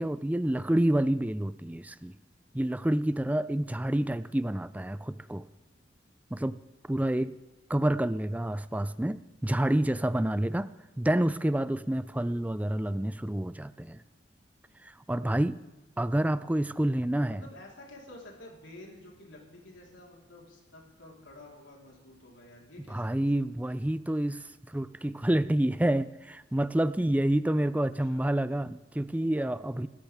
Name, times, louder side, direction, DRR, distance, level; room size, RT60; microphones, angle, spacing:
voice 1, 0.0-2.2 2.5-5.4 6.3-6.6 6.9-7.4 7.7-10.7 11.0-14.0 14.8-15.6 16.0-17.4 22.9-29.9, right 1 dB, 10° right, 15 dB, 0.4 m, -28 dB
voice 2, 17.3-23.7 28.1-28.2, left 1 dB, 85° left, -2 dB, 4.0 m, -50 dB
26.0 x 13.5 x 3.5 m, 1.1 s
head